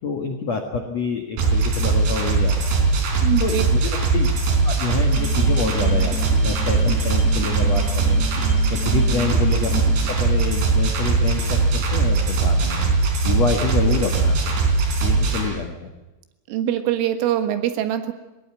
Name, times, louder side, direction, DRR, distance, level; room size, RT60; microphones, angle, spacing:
voice 1, 0.0-2.7 3.4-4.3 4.6-8.2 8.8-9.8 10.1-12.8 13.2-14.6 15.0-15.9, left 5 dB, 75° left, 4 dB, 1.5 m, -27 dB
sound 1, 1.4-15.4, right 3 dB, 55° right, 5.4 m, -20 dB
voice 2, 3.2-3.6 16.5-18.1, right 11 dB, 75° right, 9 dB, 4.0 m, -23 dB
sound 2, 5.1-10.1, right 2 dB, 60° left, 6.4 m, -34 dB
19.5 x 19.5 x 9.1 m, 1.0 s
omnidirectional pair, 6.0 m